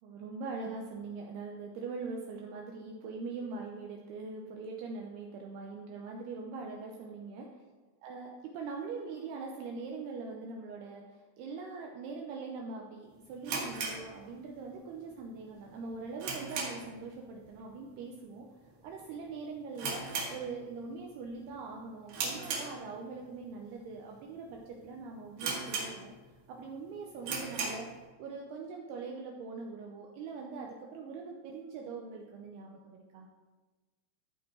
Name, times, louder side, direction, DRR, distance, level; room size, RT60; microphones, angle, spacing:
voice 1, 0.0-7.6 8.0-18.5 18.8-26.1 26.5-27.9 28.2-33.3, right 4 dB, 90° right, 0 dB, 2.3 m, -42 dB
sound 1, 13.4-14.8 15.1-15.2 15.7-17.0 17.3-17.6 17.9-18.0 18.7-19.0 19.2-19.3 19.7-20.9 21.3-21.6 22.1-23.2 23.8-23.9 24.5-24.6 24.8-24.9 25.4-26.3 26.7-26.8 27.2-27.9, right 4 dB, 60° right, 2.8 m, -37 dB
14.0 x 4.7 x 4.4 m, 1.3 s
omnidirectional pair, 5.5 m